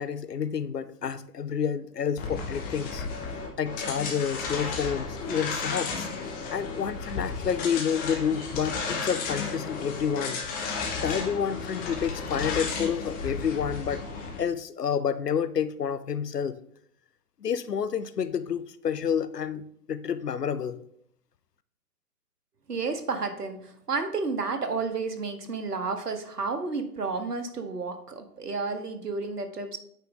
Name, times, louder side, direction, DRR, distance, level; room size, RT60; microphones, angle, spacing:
voice 1, 0.0-3.1 3.6-6.1 6.5-10.4 11.0-14.0 14.4-16.6 17.4-20.8, left 7 dB, 85° left, 15 dB, 0.7 m, -29 dB
sound 1, 2.2-14.4, left 4 dB, 20° left, 1.2 m, -33 dB
voice 2, 22.7-29.8, right 4 dB, 80° right, 8 dB, 1.3 m, -31 dB
8.9 x 5.1 x 3.8 m, 0.68 s
figure-of-eight pair, 125°, 46 cm